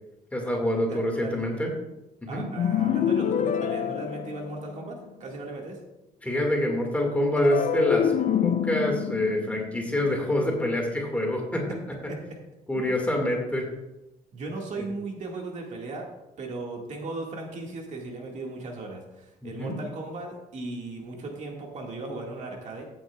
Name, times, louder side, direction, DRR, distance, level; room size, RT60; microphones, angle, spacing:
voice 1, 0.3-1.7 2.2-2.4 6.2-8.1 8.4-11.7 12.0-12.1 12.7-13.7 19.4-19.8, left 1 dB, 10° left, 0 dB, 1.9 m, -26 dB
voice 2, 0.9-1.6 2.3-5.8 12.1-12.2 12.7-12.9 14.3-16.1 16.4-22.8, right 2 dB, 50° right, 0 dB, 1.9 m, -37 dB
sound 1, 2.6-5.0 7.4-10.7, left 9 dB, 55° left, 0.5 m, -27 dB
14.5 x 8.6 x 2.3 m, 0.95 s
cardioid pair, 140°, 15 cm